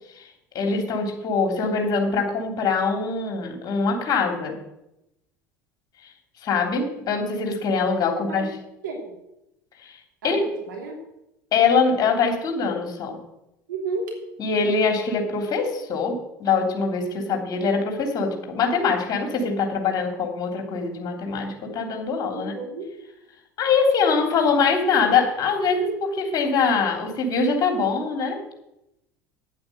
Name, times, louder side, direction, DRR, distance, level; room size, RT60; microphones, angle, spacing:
voice 1, 0.5-4.6 6.4-8.5 9.8-10.0 10.2-10.4 11.5-13.2 14.4-22.5 23.6-28.4, left 5 dB, 40° left, 3 dB, 3.2 m, -23 dB
voice 2, 8.2-8.5 8.8-9.0 10.2-10.4 10.7-10.9 13.7-14.1 17.2-17.4 22.3-22.9, right 3 dB, 75° right, 0 dB, 2.9 m, -32 dB
9.4 x 8.6 x 7.9 m, 0.87 s
figure-of-eight pair, 70°, 10 cm